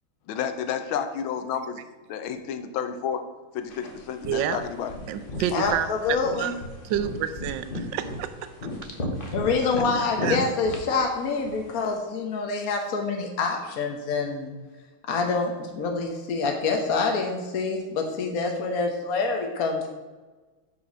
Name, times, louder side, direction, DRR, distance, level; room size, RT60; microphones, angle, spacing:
voice 1, 0.3-1.7 2.1-3.2 3.5-4.9, left 8 dB, 75° left, 9 dB, 1.6 m, -30 dB
sound 1, 3.7-11.9, left 1 dB, 30° left, 1.1 m, -36 dB
voice 2, 4.3-4.6 5.1-6.5 6.8-8.3 10.2-10.4, right 9 dB, 70° right, 11 dB, 1.2 m, -29 dB
voice 3, 5.5-6.5 9.3-14.5 15.1-19.9, left 4 dB, 55° left, 2 dB, 1.2 m, -26 dB
6.7 x 6.1 x 6.1 m, 1.3 s
omnidirectional pair, 2.3 m